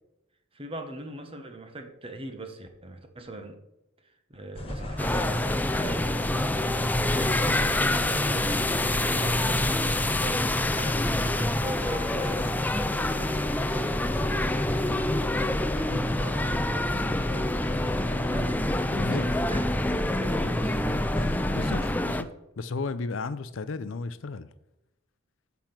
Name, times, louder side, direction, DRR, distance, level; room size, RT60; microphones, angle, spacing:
voice 1, 0.5-3.6 4.0-8.5 8.9-12.5 13.0-15.3 15.7-18.6 18.9-21.2, right 2 dB, 30° right, 1.1 m, -41 dB
sound 1, 4.6-21.9, left 1 dB, 30° left, 1.5 m, -33 dB
sound 2, 5.0-22.2, left 1 dB, 10° left, 0.4 m, -27 dB
voice 2, 18.9-19.2 21.5-22.3 22.6-24.5, left 3 dB, 70° left, 0.5 m, -33 dB
6.9 x 5.9 x 5.9 m
head